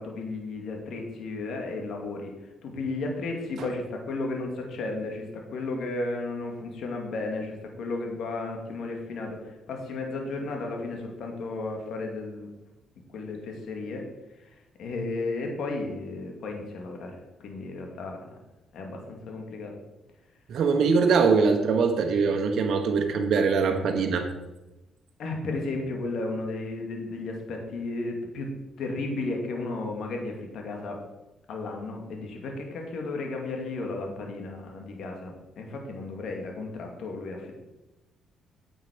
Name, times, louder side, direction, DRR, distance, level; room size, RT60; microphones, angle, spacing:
voice 1, 0.0-2.3 2.6-12.5 13.1-14.0 14.8-18.3 18.7-19.7 25.2-28.5 28.8-31.0 31.5-37.6, left 3 dB, 70° left, 2 dB, 2.3 m, -34 dB
voice 2, 20.5-24.3, right 5 dB, 70° right, 5 dB, 1.3 m, -22 dB
9.2 x 7.8 x 5.2 m, 1.0 s
cardioid pair, 90°, 0 cm